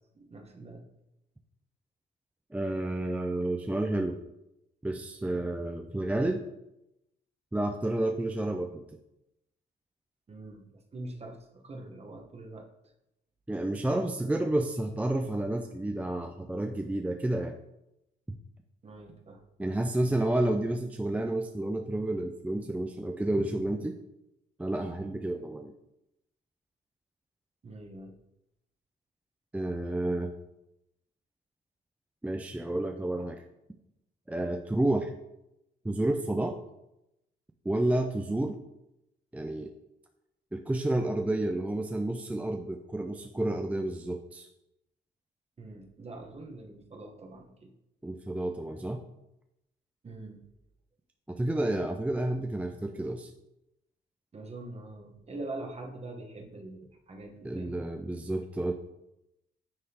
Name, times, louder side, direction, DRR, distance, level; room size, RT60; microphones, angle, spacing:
voice 1, 0.1-0.9 5.2-5.5 10.3-12.7 18.8-19.4 27.6-28.2 45.6-47.7 50.0-50.5 54.3-57.8, right 2 dB, 30° right, 2 dB, 1.0 m, -44 dB
voice 2, 2.5-4.2 4.8-6.4 7.5-8.8 13.5-17.6 18.3-18.4 19.6-23.9 24.6-25.7 29.5-30.3 32.2-33.4 34.3-35.1 35.8-36.6 37.7-38.6 39.3-39.7 40.5-44.5 48.0-49.0 51.3-53.3 57.4-58.7, right 1 dB, 5° right, 4 dB, 0.4 m, -30 dB
9.7 x 3.6 x 2.8 m, 0.89 s
cardioid pair, 90°, 20 cm